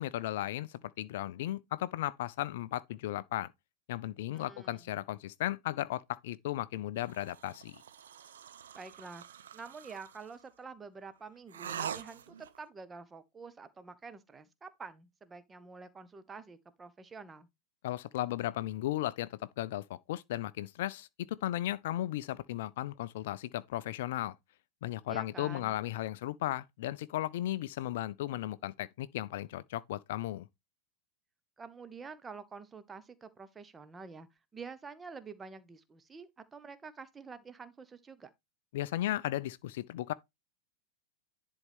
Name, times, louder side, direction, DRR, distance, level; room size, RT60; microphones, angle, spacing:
voice 1, 0.0-3.5 3.9-7.8 17.8-24.4 24.8-30.5 38.7-40.1, left 14 dB, 55° left, 0.4 m, -35 dB
voice 2, 4.3-4.9 8.7-17.5 25.1-25.8 31.6-34.3 34.5-38.3, right 5 dB, 15° right, 1.0 m, -48 dB
sound 1, 7.0-10.4 11.5-12.6, right 8 dB, 65° right, 0.7 m, -44 dB
10.5 x 4.3 x 3.5 m
figure-of-eight pair, 90°, 0 cm